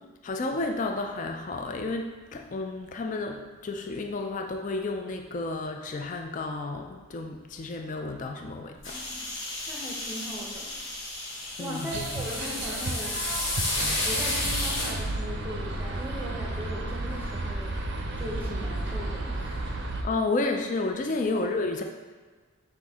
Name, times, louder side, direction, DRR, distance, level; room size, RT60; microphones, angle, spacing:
voice 1, 0.2-9.0 11.6-12.0 20.0-21.8, left 3 dB, 35° left, 3 dB, 0.3 m, -31 dB
sound 1, 8.8-14.9, left 2 dB, 65° left, 1.0 m, -32 dB
voice 2, 8.9-9.3 9.7-10.7 11.6-13.2 14.0-17.8 18.2-19.6 21.3-21.5, equal, 10° right, -4 dB, 0.7 m, -39 dB
sound 2, 11.9-20.0, right 2 dB, 55° right, 0.5 m, -33 dB
5.9 x 2.6 x 3.5 m, 1.4 s
head